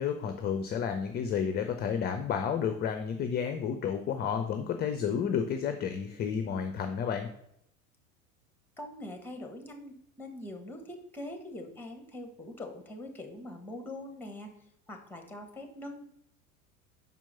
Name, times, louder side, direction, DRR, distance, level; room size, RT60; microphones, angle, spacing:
voice 1, 0.0-7.3, left 7 dB, 25° left, 7 dB, 0.5 m, -31 dB
voice 2, 8.8-14.5 14.9-16.1, left 1 dB, 5° left, 5 dB, 1.2 m, -43 dB
5.5 x 4.5 x 5.6 m, 0.71 s
figure-of-eight pair, 80°, 43 cm